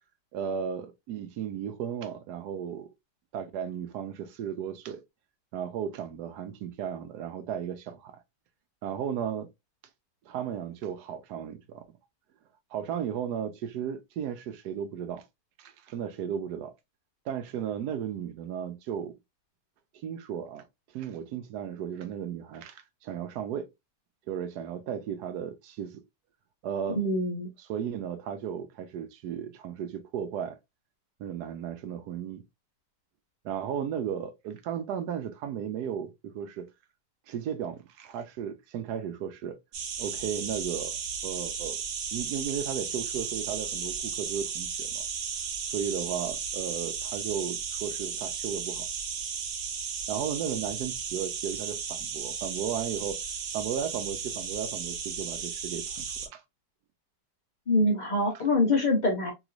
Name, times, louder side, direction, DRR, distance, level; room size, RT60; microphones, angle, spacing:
voice 1, 0.3-2.9 3.3-5.0 5.5-8.2 8.8-9.5 10.2-11.8 12.7-15.2 15.6-16.7 17.3-19.1 20.0-20.6 20.9-23.7 24.3-26.0 26.6-27.0 27.7-30.6 31.2-32.4 33.4-36.7 37.3-39.6 40.0-41.0 41.2-41.8 42.1-45.0 45.6-48.9 50.1-53.2 53.5-56.4, right 8 dB, 75° right, 1.1 m, -35 dB
voice 2, 27.0-27.5 57.7-59.3, left 2 dB, 55° left, 0.5 m, -24 dB
sound 1, 39.7-56.3, right 6 dB, 90° right, 1.4 m, -35 dB
3.1 x 3.1 x 2.4 m
omnidirectional pair, 1.9 m